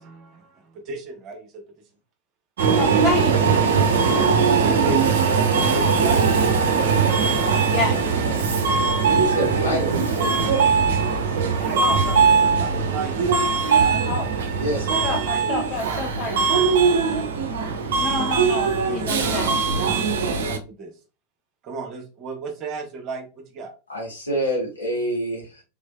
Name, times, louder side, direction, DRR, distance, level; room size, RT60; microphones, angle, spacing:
voice 1, 0.0-1.6 4.4-6.7 7.9-8.5 11.5-13.2 13.7-14.2 14.8-15.4 15.7-17.3 19.1-20.9 21.6-23.7, right 3 dB, 35° right, 3 dB, 1.0 m, -36 dB
Subway metro underground, 2.6-20.6, right 5 dB, 60° right, 0.6 m, -20 dB
voice 2, 2.8-3.3 7.7-8.0 11.8-12.0 14.1-14.3 15.0-16.4 18.0-19.5, left 3 dB, 30° left, 1 dB, 0.6 m, -28 dB
voice 3, 9.2-10.3 14.6-15.0 23.9-25.6, equal, 80° left, -3 dB, 1.7 m, -27 dB
3.5 x 3.2 x 2.3 m, 0.32 s
figure-of-eight pair, 90°, 0 cm